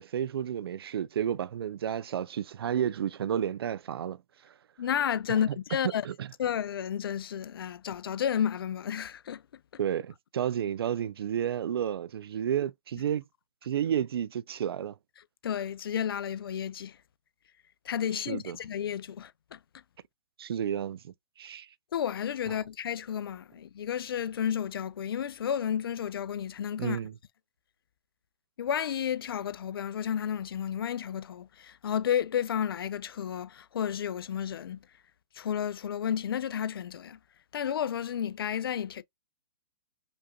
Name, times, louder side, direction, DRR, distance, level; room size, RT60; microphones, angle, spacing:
voice 1, 0.0-4.5 5.3-5.4 6.0-6.3 9.8-13.2 13.6-15.0 18.1-18.6 20.4-21.7 22.5-22.6 26.8-27.1, right 9 dB, 80° right, 0.4 m, -31 dB
voice 2, 4.8-6.1 6.4-9.4 15.4-17.0 17.8-19.6 21.9-27.0 28.6-34.8 35.4-37.2 37.5-39.0, left 9 dB, 70° left, 0.5 m, -32 dB
5.2 x 2.5 x 2.3 m
hypercardioid pair, 155°, 12 cm